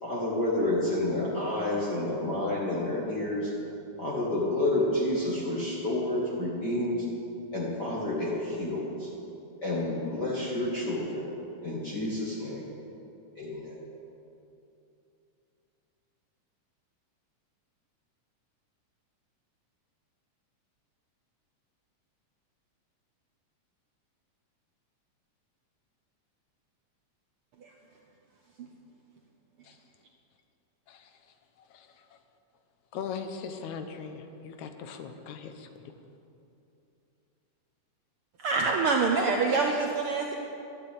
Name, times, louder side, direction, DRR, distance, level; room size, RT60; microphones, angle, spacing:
voice 1, 0.0-3.5 4.0-7.0 7.5-9.1 9.6-11.2 11.6-12.6 13.4-13.7, left 1 dB, 35° left, -6 dB, 2.1 m, -29 dB
voice 2, 32.9-35.9, left 6 dB, 70° left, 7 dB, 2.3 m, -39 dB
voice 3, 38.4-40.3, right 4 dB, 80° right, 2 dB, 1.2 m, -26 dB
12.0 x 10.0 x 8.8 m, 2.7 s
omnidirectional pair, 3.7 m